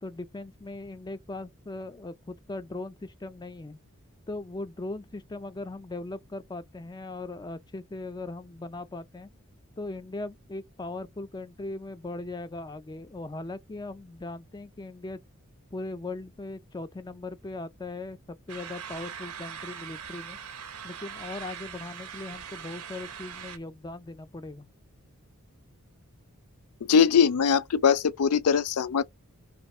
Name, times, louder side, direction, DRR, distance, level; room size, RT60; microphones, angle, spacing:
voice 1, 0.0-3.8 4.3-9.3 9.8-15.2 15.7-20.4 20.8-24.7, left 2 dB, 20° left, 0.4 m, -39 dB
sound 1, 18.5-23.6, right 8 dB, 80° right, 0.7 m, -41 dB
voice 2, 26.9-29.0, left 6 dB, 85° left, 0.4 m, -21 dB
3.0 x 2.5 x 4.2 m
head